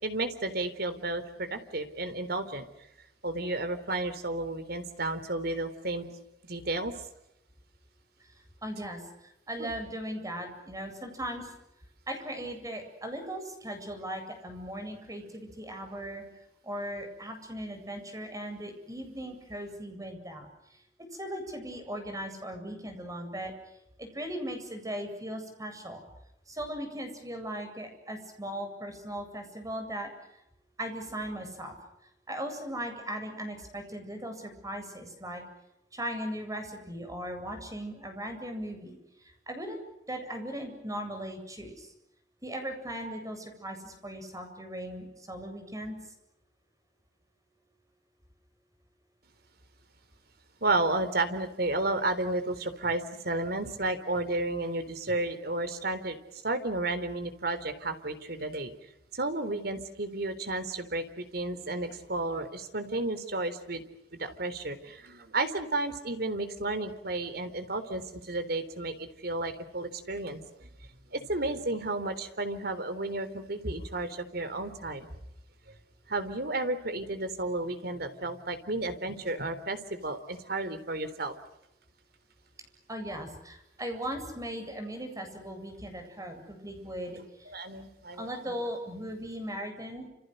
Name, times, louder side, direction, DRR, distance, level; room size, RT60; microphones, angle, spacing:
voice 1, 0.0-2.7 3.2-6.1 6.4-7.0 9.6-9.7 50.6-58.7 59.1-63.8 64.1-70.7 71.1-75.1 75.7-75.8 76.1-81.3 87.5-88.6, right 2 dB, 60° right, 10 dB, 3.9 m, -32 dB
voice 2, 8.6-9.0 9.5-11.5 12.1-16.2 16.6-20.5 21.2-23.5 24.0-26.0 26.5-30.1 30.8-31.7 32.3-35.4 35.9-39.8 40.1-41.9 42.4-46.0 82.9-87.5 88.2-90.1, equal, 20° right, 5 dB, 7.9 m, -38 dB
30.0 x 29.0 x 6.6 m, 0.83 s
head